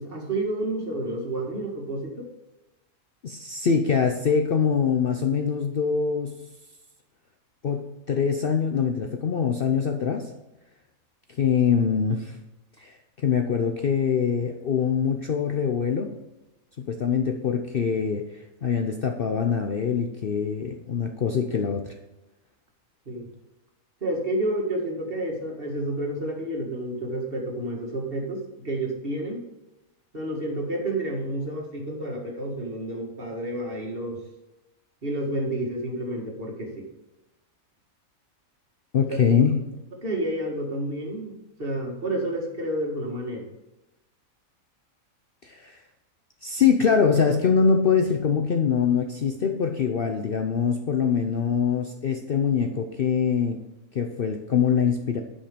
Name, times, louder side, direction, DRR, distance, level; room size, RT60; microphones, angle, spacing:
voice 1, 0.0-2.3 23.1-23.3 24.0-29.4 30.1-34.2 35.0-36.8 40.0-43.5, right 1 dB, 40° right, 0 dB, 2.0 m, -30 dB
voice 2, 3.2-6.3 7.6-10.3 11.4-12.4 12.8-16.1 16.8-18.2 18.6-21.9 38.9-39.6 45.4-45.8 46.4-53.6 53.9-55.2, left 6 dB, 50° left, 4 dB, 0.8 m, -23 dB
10.0 x 5.5 x 5.2 m, 0.99 s
omnidirectional pair, 1.5 m